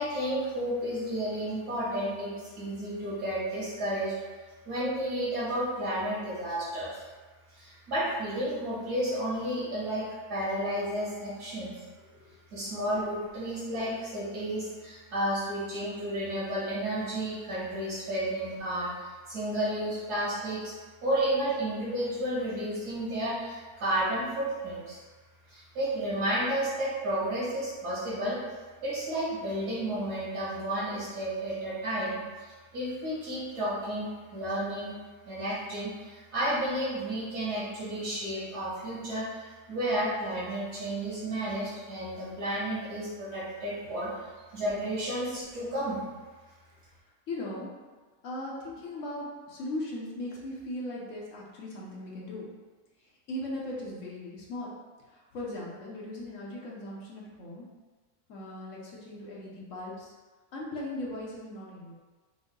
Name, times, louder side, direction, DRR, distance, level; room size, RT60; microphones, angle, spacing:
voice 1, 0.0-4.1 4.7-7.0 7.5-11.7 12.5-20.8 21.0-25.0 25.5-28.4 28.8-34.9 35.3-44.3 44.5-46.0, right 1 dB, 90° right, -8 dB, 2.1 m, -32 dB
voice 2, 47.3-47.8 48.2-52.5 53.0-54.7 55.1-57.6 58.3-60.1 60.5-61.9, left 1 dB, 60° left, -4 dB, 1.0 m, -38 dB
5.2 x 2.1 x 3.7 m, 1.3 s
omnidirectional pair, 1.6 m